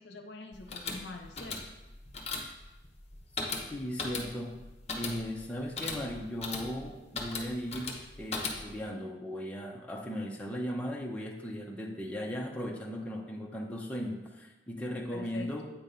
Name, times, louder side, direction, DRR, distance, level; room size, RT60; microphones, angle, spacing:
voice 1, 0.0-1.7 15.1-15.7, left 3 dB, 70° left, 5 dB, 0.7 m, -45 dB
sound 1, 0.5-8.9, left 3 dB, 35° left, 0.9 m, -39 dB
voice 2, 3.7-4.5 4.9-15.7, equal, 5° left, -1 dB, 0.7 m, -37 dB
8.3 x 3.0 x 5.2 m, 1.0 s
head